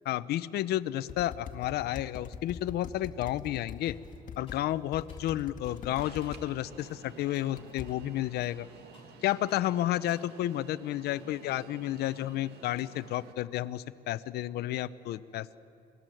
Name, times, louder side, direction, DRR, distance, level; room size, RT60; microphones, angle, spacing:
voice 1, 0.1-3.9 4.4-8.7 9.2-15.6, left 14 dB, 75° left, 14 dB, 0.7 m, -31 dB
sound 1, 1.1-4.6 4.9-6.4 7.6-7.9, left 7 dB, 50° left, 1.9 m, -43 dB
sound 2, 3.8-4.1 4.5-5.3 5.7-5.9 6.2-6.5 6.8-7.0 7.3-7.6 7.9-9.2 9.5-9.7 10.1-10.6, left 3 dB, 30° left, 7.2 m, -60 dB
Alarm, 6.0-13.3, right 6 dB, 75° right, 2.1 m, -52 dB
28.0 x 19.0 x 7.8 m, 2.5 s
cardioid pair, 110°, 17 cm